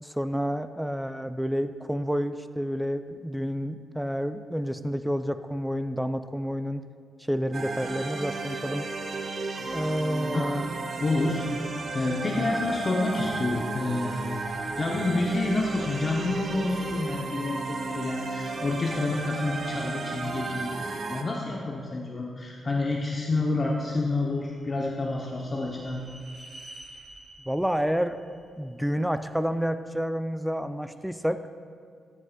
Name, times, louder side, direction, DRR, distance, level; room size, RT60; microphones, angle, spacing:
voice 1, 0.0-6.8 7.2-8.9 9.7-10.7 27.5-28.2 28.6-31.4, equal, 5° right, 10 dB, 0.3 m, -29 dB
sound 1, 7.5-21.2, right 3 dB, 60° right, 0.7 m, -33 dB
voice 2, 11.0-11.4 11.9-14.4 14.8-26.0, left 2 dB, 40° left, -1 dB, 0.7 m, -28 dB
sound 2, 24.1-29.3, right 1 dB, 30° right, 0.8 m, -50 dB
10.5 x 8.1 x 2.2 m, 2.1 s
cardioid pair, 60°, 0 cm